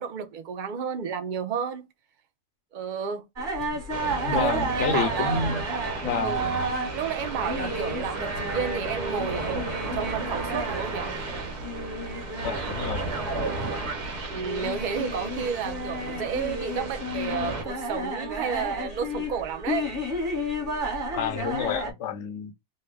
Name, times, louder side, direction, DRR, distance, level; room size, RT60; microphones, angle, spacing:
voice 1, 0.0-1.8 2.7-3.2 4.3-5.4 6.2-6.5 6.9-11.1 14.3-19.9, right 7 dB, 60° right, 0.5 m, -31 dB
sound 1, 3.4-21.9, equal, 35° right, 1.4 m, -32 dB
sound 2, 3.9-17.6, right 3 dB, 80° right, 1.6 m, -34 dB
voice 2, 4.2-5.6 6.0-6.4 12.4-13.1 21.1-22.5, left 6 dB, 65° left, 0.7 m, -29 dB
3.3 x 2.1 x 3.3 m
omnidirectional pair, 1.7 m